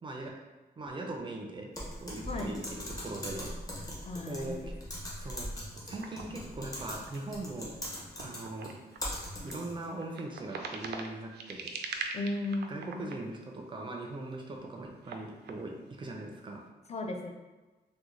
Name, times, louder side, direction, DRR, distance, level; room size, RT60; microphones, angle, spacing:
voice 1, 0.0-0.4 0.8-1.7 2.0-3.5 4.3-4.8 5.2-5.5 5.9-7.8 8.2-8.7 9.4-12.2 12.7-16.6, right 2 dB, 30° right, 1 dB, 0.4 m, -40 dB
Typing, 1.7-9.9, equal, 20° left, 0.8 m, -41 dB
voice 2, 2.3-2.6 4.1-4.7 12.1-13.1 16.9-17.3, left 2 dB, 40° left, 2 dB, 0.4 m, -35 dB
sound 1, 5.7-13.9 14.3-15.6, right 4 dB, 90° right, 0.4 m, -43 dB
3.6 x 2.1 x 3.0 m, 1.2 s
wide cardioid pair, 160°, 17 cm